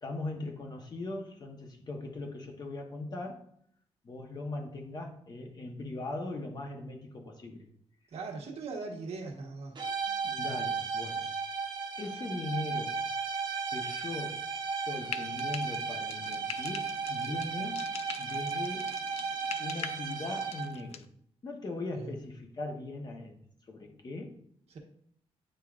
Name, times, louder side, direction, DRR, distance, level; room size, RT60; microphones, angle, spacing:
voice 1, 0.0-3.4 4.0-7.7 10.1-11.2 12.0-13.0 13.7-14.4 14.8-17.8 18.2-19.0 19.6-21.0 21.4-23.4 23.7-24.4, left 2 dB, 40° left, 2 dB, 1.0 m, -39 dB
voice 2, 8.1-9.8 17.2-17.4 21.9-22.1 24.7-24.8, right 4 dB, 70° right, 1 dB, 1.3 m, -40 dB
sound 1, 9.8-20.9, right 5 dB, 40° right, 0.9 m, -35 dB
Frying (food), 15.0-21.1, left 8 dB, 70° left, 0.4 m, -44 dB
9.0 x 4.6 x 2.5 m, 0.65 s
wide cardioid pair, 135°, 11 cm